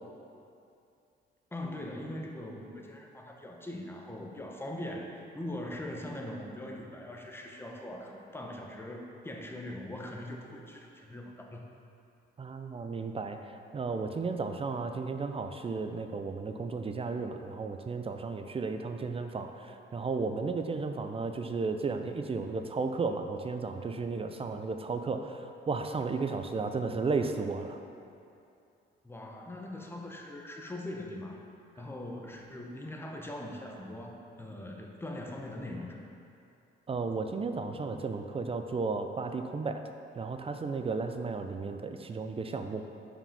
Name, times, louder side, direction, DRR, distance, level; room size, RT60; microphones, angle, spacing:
voice 1, 1.5-11.6 29.0-31.4 31.8-36.0, left 1 dB, 10° left, 0 dB, 0.9 m, -41 dB
voice 2, 12.4-27.8 36.9-39.8 40.2-42.8, right 4 dB, 30° right, 6 dB, 0.5 m, -34 dB
5.4 x 5.0 x 5.5 m, 2.6 s
cardioid pair, 90°, 20 cm